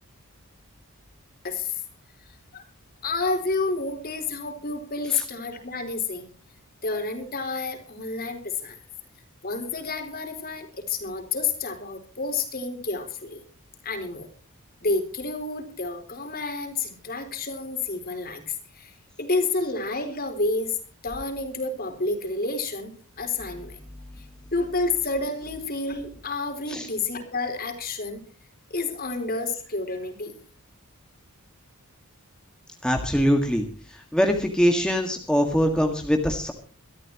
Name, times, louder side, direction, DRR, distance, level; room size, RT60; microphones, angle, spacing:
voice 1, 1.4-1.8 2.5-2.6 3.0-6.3 6.8-8.8 9.4-13.4 13.8-14.3 14.8-18.9 19.2-20.8 21.0-22.9 23.2-23.8 24.5-28.2 28.7-30.3, left 3 dB, 45° left, 6 dB, 3.9 m, -29 dB
voice 2, 32.8-36.5, equal, 5° left, 3 dB, 1.7 m, -23 dB
23.5 x 13.5 x 3.0 m, 0.39 s
head